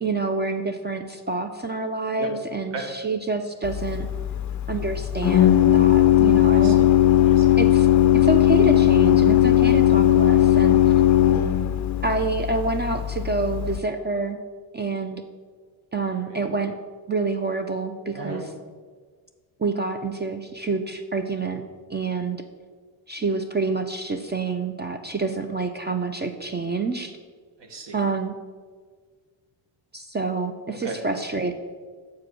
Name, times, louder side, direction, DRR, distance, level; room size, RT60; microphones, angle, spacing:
voice 1, 0.0-4.1 4.7-6.8 7.6-7.9 8.1-10.9 12.0-14.4 14.7-15.2 15.9-16.7 17.1-18.5 19.6-21.6 21.9-22.4 23.1-27.1 27.9-28.3 29.9-31.5, right 3 dB, 20° right, 7 dB, 0.4 m, -27 dB
Organ, 3.6-13.8, left 12 dB, 35° left, 0.5 m, -18 dB
voice 2, 6.5-6.8 7.2-7.5 16.3-16.4 18.1-18.5 27.6-27.9 30.8-30.9, right 4 dB, 55° right, 3 dB, 1.6 m, -35 dB
7.0 x 4.9 x 6.1 m, 1.5 s
cardioid pair, 85°, 50 cm